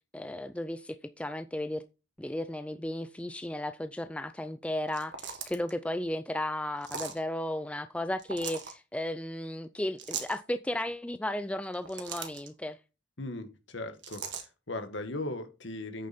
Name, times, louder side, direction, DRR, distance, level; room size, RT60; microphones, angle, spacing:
voice 1, 0.1-1.8 2.2-12.8, left 1 dB, 5° left, 0.3 m, -34 dB
sound 1, 4.9-5.7 6.8-7.2 8.2-8.7 10.0-10.4 11.6-12.5 14.0-14.5, right 6 dB, 60° right, 1.7 m, -39 dB
voice 2, 13.2-16.1, left 2 dB, 65° left, 1.6 m, -38 dB
8.6 x 6.6 x 4.3 m
head